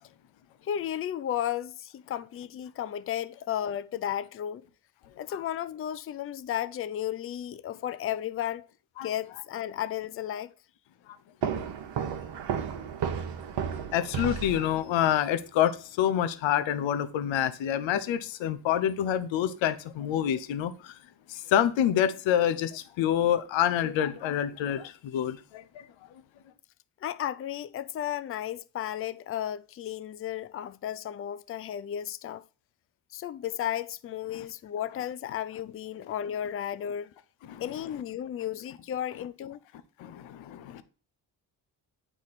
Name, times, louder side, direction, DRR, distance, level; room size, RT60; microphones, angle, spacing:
voice 1, 0.6-4.6 5.2-8.7 9.0-10.5 27.0-32.4 33.1-37.1 37.6-39.6, left 10 dB, 30° left, 0.4 m, -34 dB
sound 1, 11.4-15.1, right 8 dB, 60° right, 0.9 m, -33 dB
voice 2, 13.9-21.0 21.3-25.9 34.3-34.4 37.5-37.6 40.0-40.8, left 10 dB, 70° left, 0.8 m, -27 dB
8.8 x 3.1 x 4.1 m
supercardioid pair, 60°, 48 cm